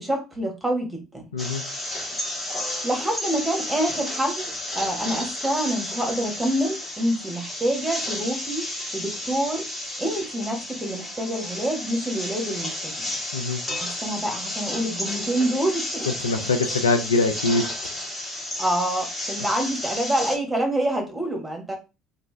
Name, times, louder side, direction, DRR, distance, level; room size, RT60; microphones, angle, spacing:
voice 1, 0.0-1.3 2.8-9.7 10.0-13.2 13.8-16.1 18.6-21.7, right 1 dB, 10° right, 1 dB, 1.5 m, -27 dB
sound 1, 1.4-20.4, left 1 dB, 15° left, 1.5 m, -32 dB
voice 2, 16.1-17.7, left 3 dB, 85° left, 6 dB, 0.3 m, -23 dB
3.1 x 2.6 x 3.2 m, 0.29 s
figure-of-eight pair, 60°, 0 cm